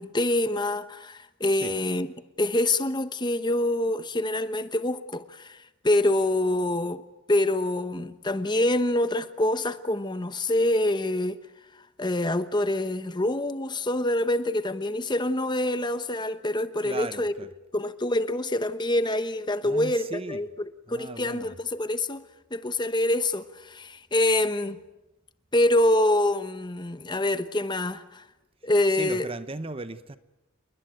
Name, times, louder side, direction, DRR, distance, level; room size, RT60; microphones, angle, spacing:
voice 1, 0.0-2.1 2.4-7.0 7.3-11.4 12.0-17.3 17.7-20.5 20.9-22.2 22.5-24.8 25.5-28.3 28.6-29.3, left 1 dB, 20° left, 1.0 m, -26 dB
voice 2, 16.8-17.5 19.6-20.4 20.9-21.5 28.9-30.2, right 2 dB, 25° right, 0.9 m, -36 dB
28.5 x 21.5 x 9.3 m
head